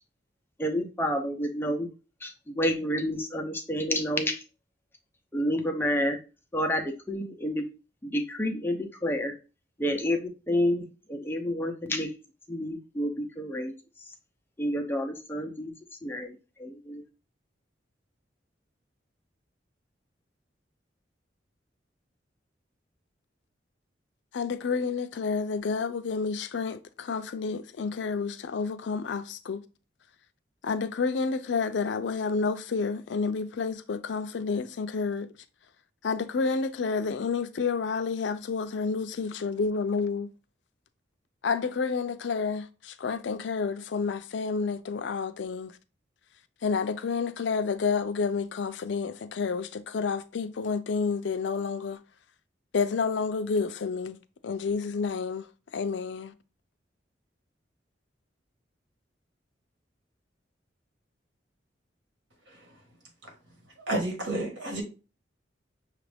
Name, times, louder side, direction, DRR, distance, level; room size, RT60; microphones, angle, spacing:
voice 1, 0.6-1.9 2.2-4.4 5.3-6.2 6.5-7.6 8.0-9.3 9.8-12.1 12.5-13.7 14.6-15.7 16.0-16.3 16.6-17.0, equal, 10° left, 0.5 m, -29 dB
voice 2, 24.3-29.6 30.6-35.3 36.0-40.3 41.4-45.8 46.6-52.0 52.7-54.2 54.4-55.5 55.7-56.3, left 5 dB, 75° left, 0.4 m, -30 dB
voice 3, 63.9-64.8, right 1 dB, 90° right, 1.5 m, -31 dB
5.9 x 2.5 x 3.3 m
head